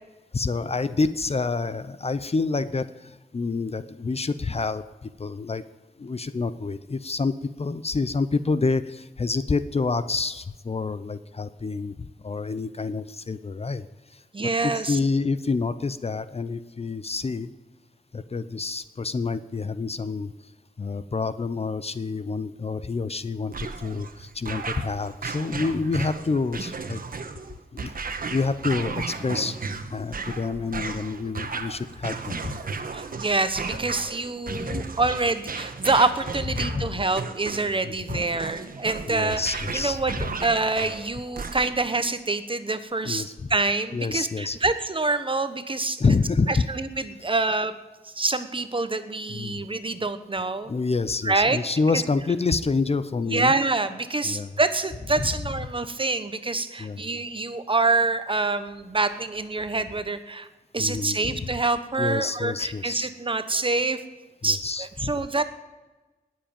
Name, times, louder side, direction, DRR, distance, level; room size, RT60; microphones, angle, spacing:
voice 1, 0.3-5.6 6.0-13.9 14.1-17.5 18.1-20.3 20.8-27.0 27.7-27.9 28.3-29.6 29.9-32.5 34.5-34.8 36.6-36.9 37.8-38.2 39.1-40.0 43.1-43.3 43.9-44.6 46.0-46.7 49.3-49.6 50.7-53.5 54.2-54.5 55.2-55.3 56.8-57.0 60.8-61.5 62.0-63.1 64.4-65.1, left 4 dB, 40° left, 14 dB, 0.7 m, -28 dB
voice 2, 14.3-15.0 32.9-40.1 40.4-46.0 46.5-47.7 48.0-50.7 51.2-51.6 51.9-52.0 53.3-60.5 60.7-64.0 64.4-65.4, right 3 dB, 30° right, 11 dB, 1.1 m, -26 dB
sound 1, 23.5-41.9, right 4 dB, 60° right, 1.3 m, -35 dB
19.5 x 7.6 x 8.8 m, 1.1 s
wide cardioid pair, 120°, 17 cm